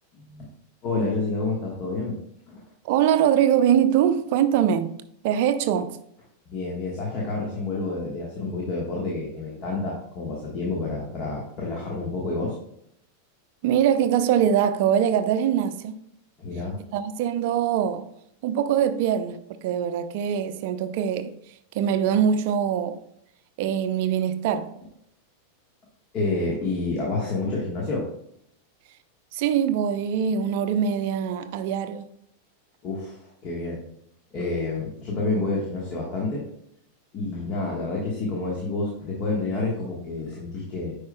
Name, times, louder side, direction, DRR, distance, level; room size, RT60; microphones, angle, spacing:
voice 1, 0.2-0.5 0.8-2.2 2.5-2.6 6.5-12.6 16.4-16.8 26.1-28.1 32.8-33.2 33.4-33.8 34.3-36.4 37.1-41.0, left 3 dB, 35° left, 1.4 m, -29 dB
voice 2, 2.8-4.9 5.2-6.0 13.6-16.0 16.9-18.1 18.4-23.0 23.6-24.7 29.3-32.1, right 9 dB, 50° right, 0.5 m, -23 dB
9.5 x 4.9 x 2.3 m
figure-of-eight pair, 90°, 0 cm